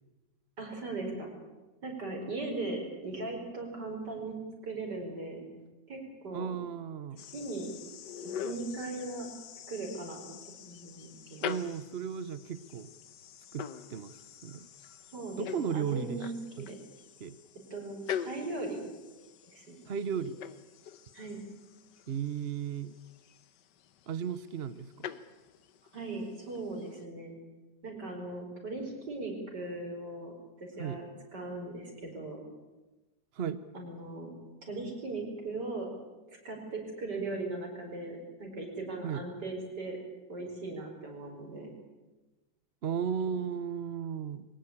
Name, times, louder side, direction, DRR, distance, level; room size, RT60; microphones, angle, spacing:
voice 1, 0.6-1.3 1.8-4.4 4.6-5.5 5.9-6.5 7.3-7.7 8.4-9.3 9.7-10.3 10.6-11.5 15.1-16.8 17.7-18.8 19.5-19.8 21.1-21.4 25.9-27.4 27.8-30.3 30.6-31.1 31.3-32.4 33.7-34.3 34.6-35.9 36.3-40.0 40.3-41.7, right 2 dB, 70° right, 1 dB, 5.5 m, -38 dB
voice 2, 6.3-7.2 11.4-12.9 13.5-14.1 14.4-14.7 15.4-16.3 16.6-16.7 17.2-17.4 19.9-20.4 22.1-22.9 24.1-25.1 30.8-31.0 33.3-33.6 39.0-39.2 42.8-44.5, right 7 dB, 45° right, 14 dB, 0.9 m, -35 dB
sound 1, 7.2-27.0, left 8 dB, 75° left, 1.5 m, -45 dB
22.0 x 18.5 x 8.7 m, 1.1 s
omnidirectional pair, 1.9 m